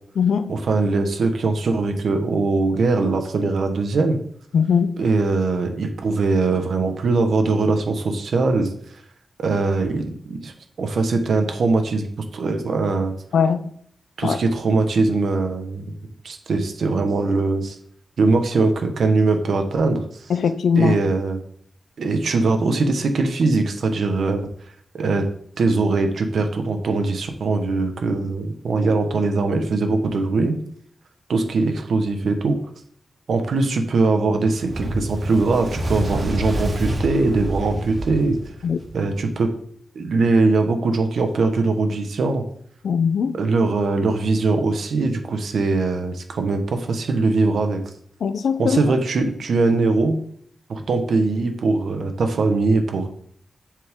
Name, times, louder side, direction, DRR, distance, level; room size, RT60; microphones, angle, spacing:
voice 1, 0.5-4.2 5.0-8.7 9.4-10.5 10.8-12.1 12.3-13.1 14.2-15.8 16.2-17.8 18.2-20.0 20.7-21.4 22.0-24.5 24.9-25.2 25.6-30.5 31.3-32.6 33.3-38.4 38.9-39.5 39.9-42.4 43.3-47.8 48.6-50.2 50.7-53.1, right 3 dB, 70° right, 1.3 m, -21 dB
voice 2, 4.5-4.9 13.3-13.6 14.2-14.4 20.3-21.0 38.6-38.8 42.8-43.3 48.2-48.8, left 6 dB, 85° left, 0.6 m, -20 dB
Fire, 34.5-39.1, right 1 dB, 50° right, 3.2 m, -27 dB
7.7 x 7.3 x 3.7 m
wide cardioid pair, 140°, 0 cm